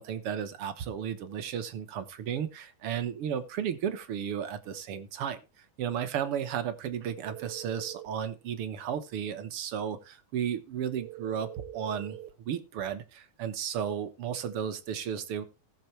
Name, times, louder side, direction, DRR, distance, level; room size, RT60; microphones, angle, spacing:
voice 1, 0.0-15.4, right 8 dB, 60° right, 10 dB, 1.6 m, -34 dB
sound 1, 7.2-8.2 11.0-12.4, right 14 dB, 85° right, 2.3 m, -44 dB
18.5 x 6.8 x 3.1 m, 0.29 s
omnidirectional pair, 3.6 m